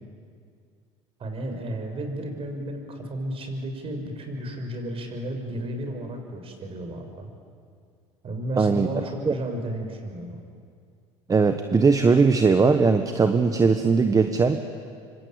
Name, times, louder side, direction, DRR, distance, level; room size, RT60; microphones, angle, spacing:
voice 1, 1.2-7.3 8.2-10.4, right 1 dB, 40° right, 5 dB, 5.8 m, -33 dB
voice 2, 8.6-8.9 9.3-9.4 11.3-14.6, right 4 dB, 25° right, 8 dB, 1.4 m, -19 dB
26.0 x 25.0 x 8.9 m, 2.2 s
hypercardioid pair, 85°, 15 cm